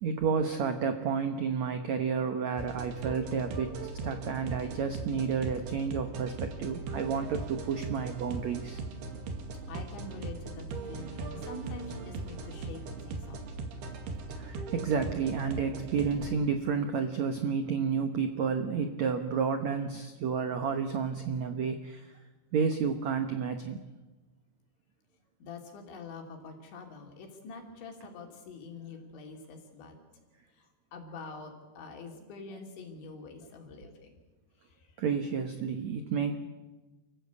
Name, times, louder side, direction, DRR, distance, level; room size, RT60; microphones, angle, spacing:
voice 1, 0.0-8.8 14.3-22.1 22.5-23.8 35.0-36.3, right 6 dB, 85° right, 7 dB, 1.5 m, -31 dB
sound 1, 2.6-16.3, right 3 dB, 65° right, 4.1 m, -39 dB
voice 2, 9.7-13.4 25.4-30.0 30.6-30.7 30.9-34.1, left 3 dB, 90° left, 2 dB, 5.4 m, -45 dB
29.5 x 15.5 x 8.3 m, 1.2 s
omnidirectional pair, 5.1 m